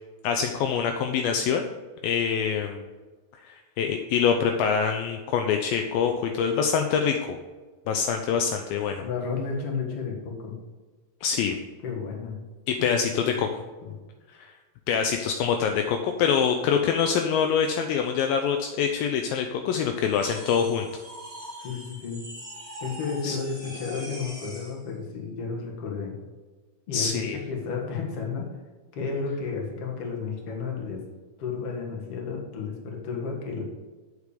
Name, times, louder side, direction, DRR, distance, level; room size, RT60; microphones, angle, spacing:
voice 1, 0.2-1.7 2.0-2.8 3.5-7.4 7.9-9.0 11.2-11.6 12.7-13.6 14.4-14.5 14.9-20.9 23.2-23.4 26.9-27.4, left 7 dB, 80° left, 5 dB, 2.2 m, -25 dB
voice 2, 9.0-10.5 11.8-12.4 12.9-13.0 13.3-13.4 13.8-13.9 21.6-22.2 22.8-26.1 26.9-28.5 28.9-31.0 31.4-33.6, left 5 dB, 50° left, 0 dB, 2.1 m, -32 dB
sound 1, 20.1-24.8, equal, ahead, 2.3 m, -42 dB
8.1 x 6.8 x 5.0 m, 1.4 s
omnidirectional pair, 4.5 m